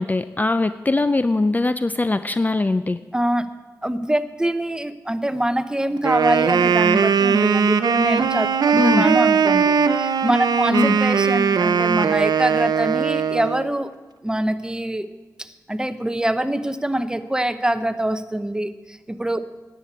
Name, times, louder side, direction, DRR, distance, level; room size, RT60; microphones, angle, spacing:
voice 1, 0.0-3.0 8.8-9.0 10.7-11.0, left 2 dB, 25° left, 12 dB, 0.4 m, -21 dB
voice 2, 3.1-3.5 3.8-13.9 14.2-15.1 15.4-19.6, right 1 dB, 10° right, 11 dB, 0.8 m, -24 dB
Wind instrument woodwind instrument, 6.0-13.7, right 6 dB, 75° right, 0.6 m, -19 dB
10.5 x 8.3 x 8.5 m, 1.3 s
cardioid pair, 60°, 7 cm